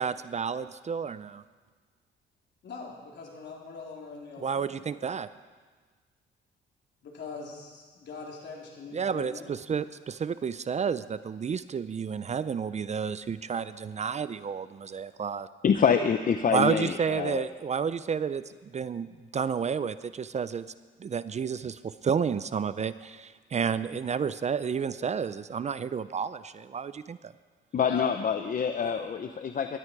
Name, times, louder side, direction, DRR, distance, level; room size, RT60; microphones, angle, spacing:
voice 1, 0.0-1.4 4.4-5.3 8.9-15.5 16.5-18.4 18.7-20.7 21.0-27.3, right 6 dB, 35° right, 14 dB, 0.5 m, -31 dB
voice 2, 2.6-4.8 7.0-9.5 27.9-28.0 28.8-28.9, left 4 dB, 65° left, -2 dB, 3.8 m, -42 dB
voice 3, 15.6-17.5 27.7-29.8, left 7 dB, 45° left, 8 dB, 0.8 m, -26 dB
18.0 x 13.0 x 4.8 m, 1.4 s
cardioid pair, 90°, 20 cm